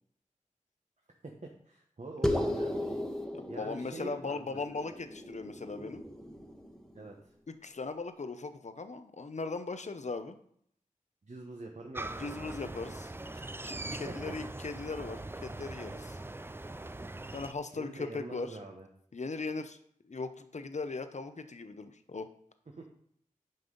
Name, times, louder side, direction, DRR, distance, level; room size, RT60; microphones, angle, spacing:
voice 1, 1.2-3.0 3.5-4.8 6.9-7.3 11.2-12.8 13.9-14.4 17.8-18.9 22.8-22.9, right 2 dB, 55° right, 0 dB, 1.0 m, -45 dB
sound 1, 2.2-7.0, left 1 dB, 5° left, 1.2 m, -36 dB
voice 2, 3.3-6.0 7.5-10.4 12.2-13.1 13.6-16.2 17.3-18.6 19.1-19.8 20.0-22.3, left 3 dB, 60° left, 9 dB, 0.7 m, -39 dB
sound 2, 11.9-17.5, right 2 dB, 15° right, 0.4 m, -41 dB
9.2 x 5.5 x 3.9 m, 0.65 s
wide cardioid pair, 70°, 14 cm